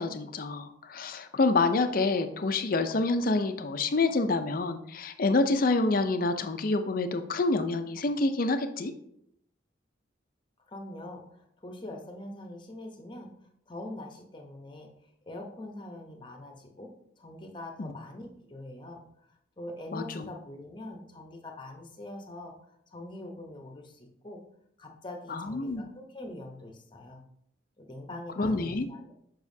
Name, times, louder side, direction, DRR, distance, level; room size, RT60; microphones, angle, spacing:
voice 1, 0.0-8.9 17.8-17.9 19.9-20.3 25.3-25.9 28.4-28.9, left 3 dB, 50° left, 9 dB, 0.5 m, -27 dB
voice 2, 10.7-13.3 13.7-14.9 15.3-16.9 17.2-24.4 24.8-27.2 27.8-29.1, left 1 dB, 25° left, 3 dB, 0.8 m, -43 dB
7.1 x 5.5 x 2.7 m, 0.73 s
head